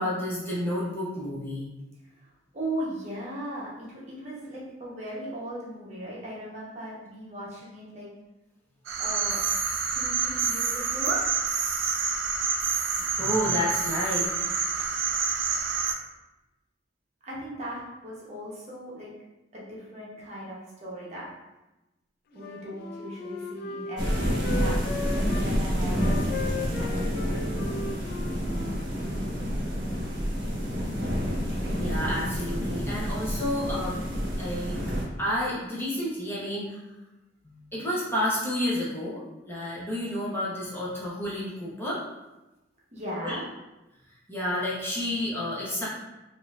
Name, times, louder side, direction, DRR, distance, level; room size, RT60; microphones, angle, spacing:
voice 1, 0.0-1.6 13.2-14.2 31.8-34.0 34.4-34.8 35.2-36.8 37.4-42.0 43.2-43.4 44.3-45.9, left 1 dB, 15° left, -7 dB, 0.7 m, -30 dB
voice 2, 2.2-8.1 9.0-9.5 9.9-11.2 17.2-19.1 19.5-21.3 22.3-28.0 42.9-43.4, right 1 dB, 40° right, -5 dB, 0.9 m, -38 dB
sound 1, 8.9-16.0, right 5 dB, 85° right, 0.4 m, -27 dB
Wind instrument woodwind instrument, 22.3-25.5 25.9-29.4, left 4 dB, 55° left, 0.3 m, -37 dB
sound 2, 24.0-35.1, equal, 65° right, 0.9 m, -28 dB
4.1 x 2.5 x 2.4 m, 1.0 s
head